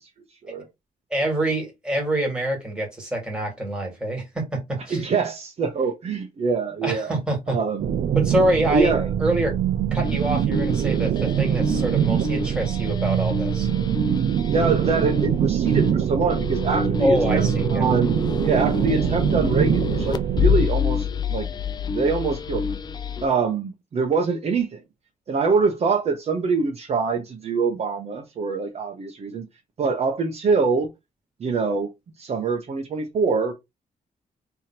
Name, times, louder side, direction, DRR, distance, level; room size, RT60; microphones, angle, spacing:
voice 1, 1.1-5.0 6.8-7.6 8.2-8.9 9.2-9.5 9.9-13.7 17.0-17.9, right 1 dB, 5° right, 2.1 m, -25 dB
voice 2, 4.9-7.1 7.5-7.9 8.6-9.1 14.5-21.5 21.9-22.7 23.2-24.8 25.3-29.5 29.8-30.9 31.4-31.9 32.2-33.5, right 4 dB, 45° right, 0.9 m, -24 dB
sound 1, 7.8-20.7, right 9 dB, 60° right, 0.5 m, -23 dB
sound 2, 10.0-23.3, left 6 dB, 30° left, 0.4 m, -28 dB
3.5 x 2.9 x 4.4 m
wide cardioid pair, 155°, 15 cm